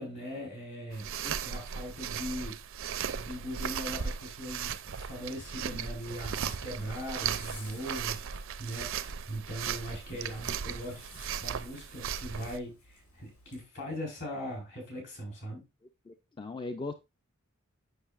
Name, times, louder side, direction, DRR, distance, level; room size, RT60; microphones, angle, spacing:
voice 1, 0.0-1.1 1.4-2.6 3.1-15.6, equal, 60° left, 4.1 m, -40 dB
sound 1, 0.9-12.6, right 7 dB, 60° right, 0.5 m, -37 dB
Zipper (clothing), 6.1-13.6, left 1 dB, 90° left, 4.1 m, -56 dB
voice 2, 16.1-16.9, left 3 dB, 20° left, 0.3 m, -39 dB
8.0 x 6.2 x 2.4 m
head